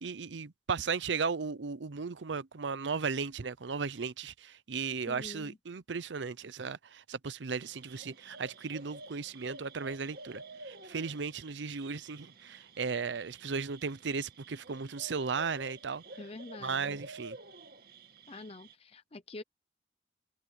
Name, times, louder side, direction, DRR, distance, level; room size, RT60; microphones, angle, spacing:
voice 1, 0.0-16.0 16.6-17.4, right 5 dB, 85° right, 0.7 m, -36 dB
voice 2, 5.1-5.6 16.2-17.0 18.3-19.4, left 2 dB, 35° left, 0.7 m, -46 dB
sound 1, 7.6-18.7, right 3 dB, 55° right, 2.4 m, -51 dB
head